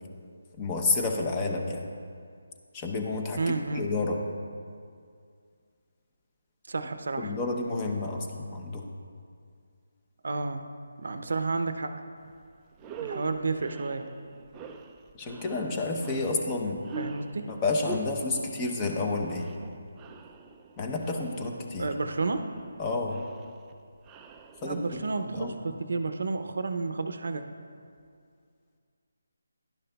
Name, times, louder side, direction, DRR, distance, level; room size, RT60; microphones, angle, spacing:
voice 1, 0.6-1.8 2.7-3.4 3.7-4.2 7.2-8.8 15.2-16.8 17.6-19.5 20.8-21.9 22.8-23.2 24.6-25.0 25.3-25.6, left 3 dB, 20° left, 1 dB, 0.8 m, -30 dB
voice 2, 3.4-3.9 6.7-7.3 10.2-10.6 11.0-12.0 13.0-14.1 17.0-17.5 21.8-22.5 24.6-27.4, right 3 dB, 65° right, 8 dB, 0.6 m, -31 dB
sound 1, 12.2-12.4 12.7-25.1, right 4 dB, 15° right, 0.3 m, -45 dB
11.5 x 10.0 x 2.3 m, 2.2 s
figure-of-eight pair, 160°, 0 cm